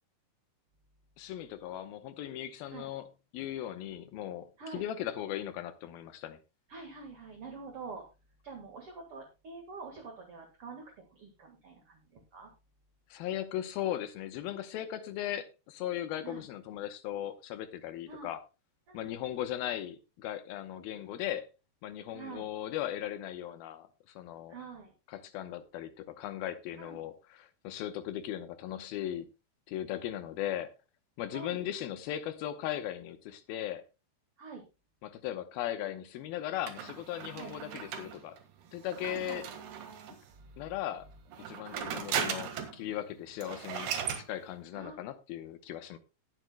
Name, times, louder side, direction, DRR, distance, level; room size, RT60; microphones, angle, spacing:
voice 1, 1.2-3.1 3.3-6.4 13.1-18.4 18.9-21.5 21.8-24.6 25.1-29.3 29.7-30.7 31.2-33.9 35.0-38.4 38.7-39.5 40.6-41.1 41.5-46.0, left 12 dB, 75° left, 2.6 m, -38 dB
voice 2, 6.7-8.0 8.4-12.5 16.2-16.5 18.1-18.3 18.9-19.1 22.1-22.5 24.5-24.9 26.8-27.0 31.3-31.6 34.4-34.6 37.3-37.5 39.0-39.4 40.3-40.7 41.7-41.9 44.7-45.1, right 4 dB, 50° right, 2.0 m, -46 dB
sound 1, 36.7-40.3 41.3-42.8 43.1-43.2 43.4-44.3, right 8 dB, 80° right, 3.6 m, -37 dB
19.5 x 7.9 x 2.2 m
omnidirectional pair, 4.5 m